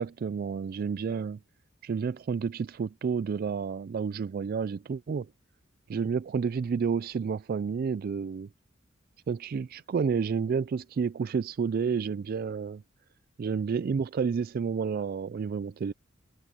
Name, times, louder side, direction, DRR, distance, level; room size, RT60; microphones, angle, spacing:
voice 1, 0.0-1.4 1.8-5.3 5.9-8.5 9.3-12.8 13.4-15.9, right 6 dB, 45° right, 0.3 m, -30 dB
head